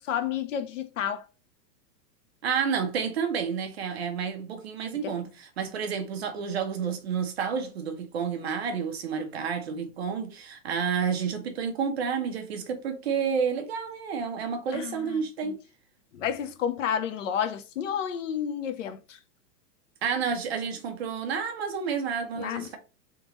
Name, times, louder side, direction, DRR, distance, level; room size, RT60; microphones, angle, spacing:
voice 1, 0.1-1.3 5.0-5.1 14.7-15.5 16.1-19.2 22.4-22.7, left 8 dB, 50° left, 0.6 m, -31 dB
voice 2, 2.4-15.6 20.0-22.8, right 6 dB, 40° right, 0.7 m, -30 dB
3.6 x 2.9 x 2.9 m
supercardioid pair, 175°, 49 cm